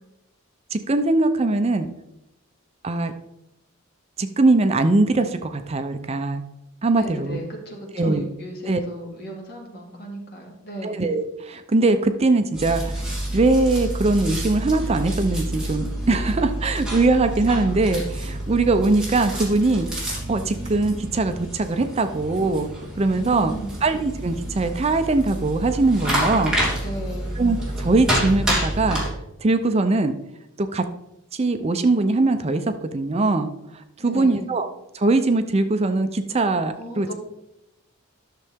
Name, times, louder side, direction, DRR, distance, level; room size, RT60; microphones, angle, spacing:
voice 1, 0.7-1.9 2.8-3.1 4.2-6.4 6.8-7.4 8.0-8.3 8.7-8.8 10.8-13.0 13.3-22.7 23.0-23.5 23.8-26.6 27.4-29.0 29.4-30.1 30.6-30.8 31.3-33.5 34.0-34.7 34.9-37.1, right 2 dB, 30° right, 9 dB, 0.5 m, -21 dB
voice 2, 6.9-11.0 23.1-23.8 26.8-27.3 34.0-34.5 36.7-37.1, equal, 50° left, 0 dB, 2.2 m, -36 dB
sound 1, 12.5-29.1, right 1 dB, 5° right, 2.8 m, -28 dB
11.5 x 6.6 x 3.5 m, 0.87 s
head